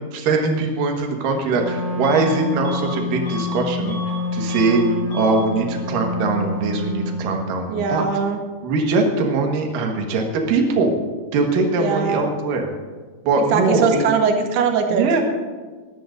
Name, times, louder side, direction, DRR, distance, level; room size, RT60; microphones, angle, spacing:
voice 1, 0.1-8.1 8.6-11.0 11.3-12.7 13.2-14.1 14.9-15.2, right 3 dB, 65° right, 2 dB, 2.9 m, -21 dB
Wind instrument woodwind instrument, 1.5-7.4, left 1 dB, 25° right, 1.6 m, -27 dB
Bus / Alarm, 2.0-2.3 2.6-4.2 4.5-4.8 5.1-5.4, equal, 55° left, 2.6 m, -35 dB
voice 2, 7.7-8.4 11.8-12.3 13.5-15.2, right 6 dB, 85° right, 4 dB, 2.9 m, -21 dB
21.0 x 13.5 x 2.6 m, 1.4 s
omnidirectional pair, 4.5 m